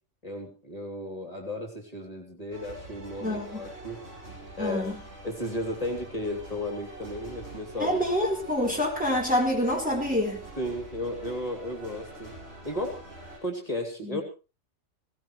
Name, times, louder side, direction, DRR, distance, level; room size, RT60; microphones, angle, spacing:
voice 1, 0.2-4.0 4.6-4.8 5.2-8.0 10.6-12.3 12.6-13.1 13.4-14.2, left 1 dB, 30° left, 1 dB, 3.2 m, -34 dB
sound 1, 2.5-13.4, right 1 dB, 60° right, 8.0 m, -45 dB
voice 2, 3.2-3.7 4.6-5.0 7.8-10.4 14.0-14.2, left 1 dB, 5° right, -2 dB, 3.8 m, -27 dB
19.0 x 17.5 x 3.2 m, 0.32 s
omnidirectional pair, 1.2 m